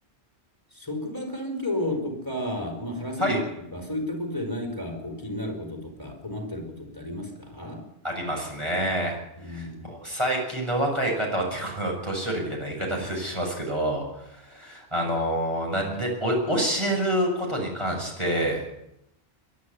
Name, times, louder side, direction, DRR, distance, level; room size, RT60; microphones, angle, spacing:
voice 1, 0.7-7.8 9.4-9.9, left 1 dB, 20° left, 3 dB, 4.5 m, -32 dB
voice 2, 8.0-9.2 9.5-18.6, right 1 dB, 25° right, -1 dB, 6.9 m, -27 dB
23.0 x 12.0 x 9.7 m, 0.82 s
omnidirectional pair, 1.1 m